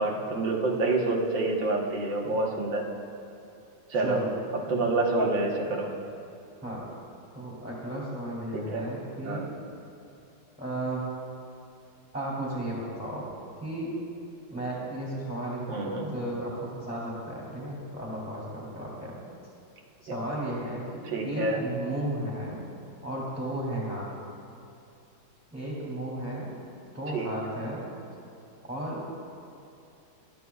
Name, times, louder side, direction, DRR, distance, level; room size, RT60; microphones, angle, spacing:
voice 1, 0.0-2.8 3.9-4.2 4.7-5.9 8.5-8.9 9.2-9.5 15.7-16.1 20.1-20.2 21.1-21.6 27.1-27.3, right 2 dB, 70° right, -1 dB, 2.0 m, -27 dB
voice 2, 3.9-4.3 6.6-6.9 7.3-9.4 10.6-11.1 12.1-13.3 13.6-13.9 14.5-19.2 20.0-22.6 23.0-24.0 25.5-26.6 26.9-27.8 28.7-29.1, right 1 dB, 5° right, -5 dB, 2.6 m, -34 dB
20.5 x 12.0 x 2.4 m, 2.7 s
omnidirectional pair, 2.2 m